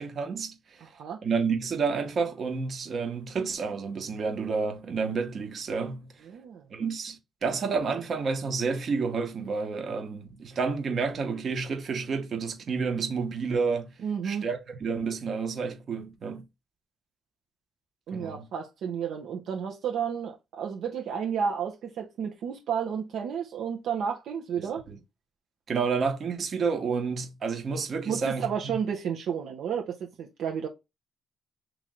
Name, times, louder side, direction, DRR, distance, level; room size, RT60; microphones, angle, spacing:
voice 1, 0.0-0.8 1.2-6.1 6.7-13.9 14.2-16.4 18.1-18.5 24.6-25.0 25.7-28.8, right 5 dB, 50° right, 1.2 m, -30 dB
voice 2, 0.8-1.2 6.3-6.6 14.0-14.5 18.1-24.8 28.0-30.7, right 7 dB, 75° right, 0.8 m, -32 dB
3.1 x 3.0 x 3.7 m
cardioid pair, 90°, 0 cm